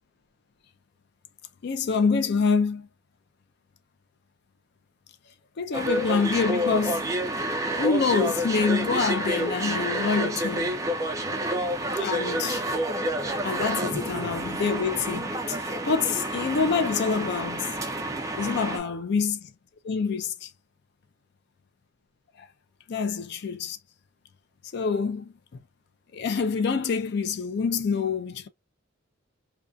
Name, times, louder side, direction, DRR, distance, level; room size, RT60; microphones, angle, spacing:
voice 1, 1.6-2.9 5.6-7.1 7.8-10.8 12.0-12.6 13.4-15.6 15.9-17.8 18.4-19.4 19.8-20.5 22.9-23.8 24.7-25.3 26.1-28.5, left 5 dB, 55° left, 0.4 m, -26 dB
sound 1, 5.7-18.8, right 1 dB, 15° right, 0.4 m, -29 dB
2.6 x 2.3 x 2.2 m
head